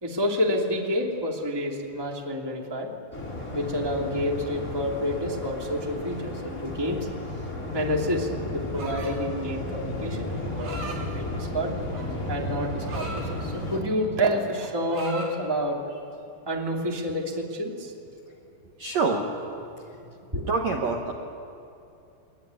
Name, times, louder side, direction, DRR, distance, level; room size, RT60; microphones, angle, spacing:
voice 1, 0.0-2.9 3.5-7.1 7.7-10.3 10.5-11.8 12.3-15.8 16.4-17.9 20.3-20.5, equal, 10° right, 0 dB, 1.3 m, -29 dB
Waves surf, 3.1-13.8, left 1 dB, 20° left, 4.6 m, -33 dB
sound 1, 8.7-9.3 10.3-11.0 11.9-13.3 13.7-14.0 14.3-15.3, right 2 dB, 65° right, 5.5 m, -38 dB
voice 2, 18.8-19.2 20.5-21.1, right 4 dB, 80° right, 1 dB, 1.5 m, -25 dB
23.0 x 21.0 x 9.6 m, 2.7 s
omnidirectional pair, 5.3 m